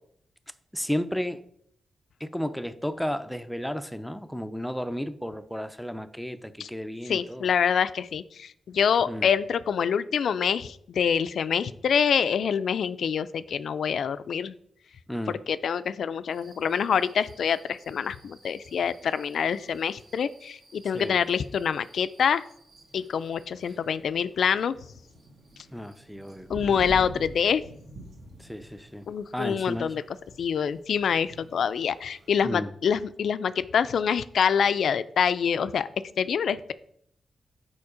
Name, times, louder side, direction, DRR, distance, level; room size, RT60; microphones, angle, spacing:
voice 1, 0.7-1.4 2.2-7.5 9.1-9.3 15.1-15.4 20.9-21.2 25.7-26.5 28.4-29.1 29.3-29.9 32.4-32.7, equal, ahead, 0.4 m, -33 dB
voice 2, 7.1-14.5 15.5-22.4 22.9-24.8 26.5-27.6 29.1-30.0 30.4-35.9 36.2-36.7, left 7 dB, 75° left, 0.3 m, -26 dB
sound 1, 16.3-32.4, right 1 dB, 65° right, 1.4 m, -48 dB
7.1 x 4.4 x 4.9 m
wide cardioid pair, 130°, 0 cm